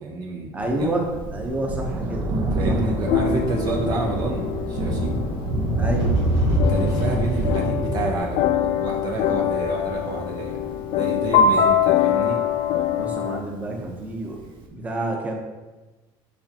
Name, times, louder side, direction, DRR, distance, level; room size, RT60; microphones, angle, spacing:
voice 1, 0.0-1.0 2.6-5.2 6.5-12.4, right 4 dB, 45° right, 0 dB, 0.6 m, -30 dB
voice 2, 0.5-2.3 2.7-3.1 5.7-6.2 11.4-11.6 12.9-15.4, right 2 dB, 15° right, 1 dB, 0.9 m, -29 dB
Thunder, 0.6-13.5 14.4-14.5, right 1 dB, 60° right, 1.0 m, -26 dB
sound 1, 2.9-13.4, left 8 dB, 75° left, 0.4 m, -24 dB
6.4 x 5.6 x 2.9 m, 1.2 s
cardioid pair, 145°, 9 cm